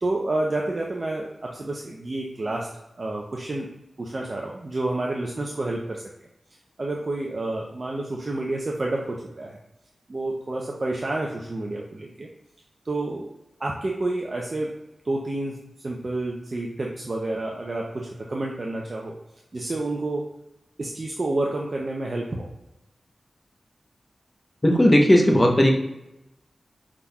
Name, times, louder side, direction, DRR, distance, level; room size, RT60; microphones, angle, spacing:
voice 1, 0.0-3.7 4.0-6.0 6.8-9.6 10.1-12.3 12.8-13.3 13.6-14.8 15.0-19.2 19.5-20.3 20.8-22.5, right 2 dB, 45° right, -1 dB, 0.6 m, -29 dB
voice 2, 24.6-25.8, equal, 20° left, 1 dB, 0.8 m, -16 dB
5.8 x 3.6 x 2.3 m, 0.90 s
wide cardioid pair, 85°, 0 cm